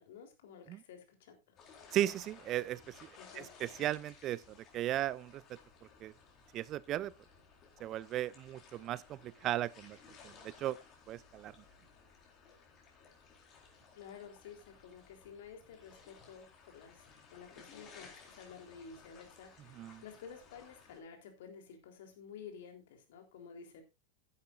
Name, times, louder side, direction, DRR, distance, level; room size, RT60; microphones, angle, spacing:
voice 1, 0.0-1.6 3.2-3.5 14.0-17.0 17.3-23.8, left 6 dB, 55° left, 3.6 m, -52 dB
sound 1, 1.6-21.0, left 5 dB, 30° left, 4.0 m, -58 dB
voice 2, 1.9-3.1 3.3-5.4 6.0-6.1 6.5-7.1 7.8-10.0 10.2-10.8 11.1-11.5 19.8-20.0, right 13 dB, 35° right, 0.5 m, -36 dB
14.5 x 10.5 x 2.6 m
figure-of-eight pair, 90°, 0 cm